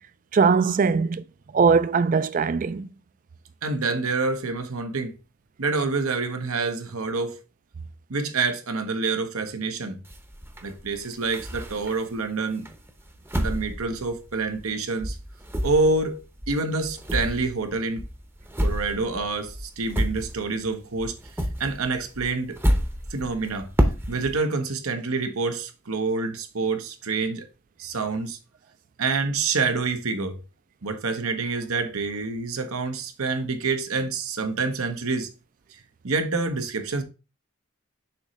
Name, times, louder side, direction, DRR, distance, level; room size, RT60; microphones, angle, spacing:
voice 1, 0.3-1.2 1.5-2.9, right 5 dB, 40° right, 0.3 m, -20 dB
voice 2, 3.6-5.1 5.6-7.4 8.1-10.0 10.6-12.7 13.4-15.2 15.6-18.0 18.6-21.2 21.6-22.6 23.1-23.7 24.1-27.5 27.8-28.4 29.0-30.4 30.8-35.3 35.7-35.8 36.0-37.0, right 3 dB, 85° right, 1.1 m, -27 dB
sound 1, 10.1-12.2 12.7-14.8 15.0-20.7 21.0-24.4, equal, 10° right, 0.7 m, -29 dB
7.0 x 3.1 x 5.2 m
head